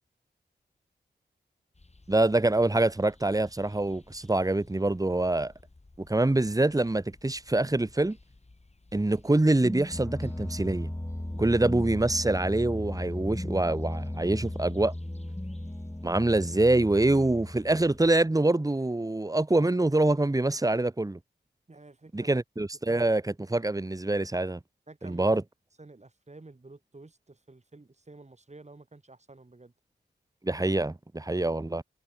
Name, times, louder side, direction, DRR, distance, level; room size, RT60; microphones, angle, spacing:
sound 1, 1.7-18.3, left 2 dB, 35° left, 5.0 m, -55 dB
voice 1, 2.1-5.5 6.0-8.2 8.9-10.9 11.4-14.9 16.0-21.2 22.1-24.6 25.0-25.4 30.4-31.8, right 2 dB, 20° right, 1.5 m, -25 dB
sound 2, 9.4-18.2, left 1 dB, 15° left, 4.1 m, -36 dB
voice 2, 21.7-22.3 24.9-25.3 25.8-29.7, right 2 dB, 35° right, 6.7 m, -51 dB
cardioid pair, 45°, 19 cm